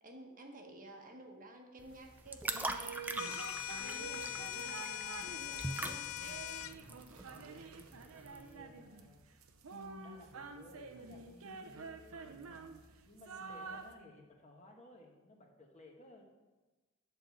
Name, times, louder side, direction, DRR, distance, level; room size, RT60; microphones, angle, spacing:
voice 1, 0.0-3.3 3.7-6.1, right 1 dB, 40° right, 3 dB, 1.2 m, -53 dB
sound 1, 1.8-8.5, right 2 dB, 10° right, 0.5 m, -43 dB
sound 2, 1.9-13.9, right 4 dB, 80° right, 0.8 m, -49 dB
sound 3, 3.2-6.8, left 14 dB, 70° left, 0.3 m, -42 dB
voice 2, 7.3-7.6 8.0-9.3 10.0-12.3 13.0-16.2, left 1 dB, 35° left, 1 dB, 1.4 m, -59 dB
10.0 x 4.5 x 7.1 m, 1.2 s
head